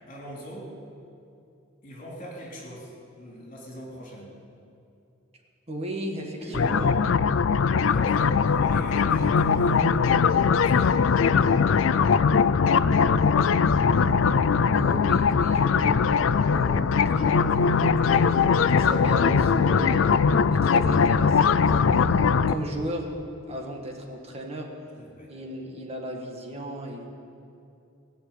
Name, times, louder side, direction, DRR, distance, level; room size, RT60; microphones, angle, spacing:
voice 1, 0.1-0.7 1.8-2.9 3.2-4.3 6.4-7.1 7.8-11.0 25.0-25.3, equal, 45° left, -3 dB, 3.4 m, -40 dB
voice 2, 5.7-6.9 14.7-20.0 20.5-23.1 23.5-24.7 25.3-27.1, right 1 dB, 30° right, 1 dB, 1.7 m, -35 dB
sound 1, 6.5-22.5, left 5 dB, 70° left, 0.4 m, -21 dB
17.0 x 6.6 x 9.5 m, 2.7 s
head